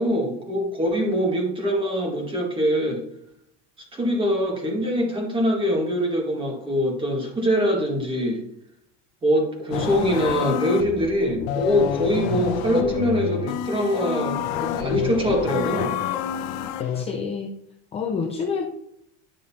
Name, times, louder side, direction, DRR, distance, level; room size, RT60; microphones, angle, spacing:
voice 1, 0.0-3.0 3.9-8.4 9.2-15.9, equal, 15° right, 0 dB, 1.7 m, -23 dB
sound 1, 9.7-17.0, left 10 dB, 75° left, 0.8 m, -28 dB
voice 2, 16.8-17.5 17.9-18.7, left 5 dB, 20° left, 2 dB, 0.5 m, -28 dB
10.0 x 6.3 x 2.8 m, 0.76 s
cardioid pair, 160°, 34 cm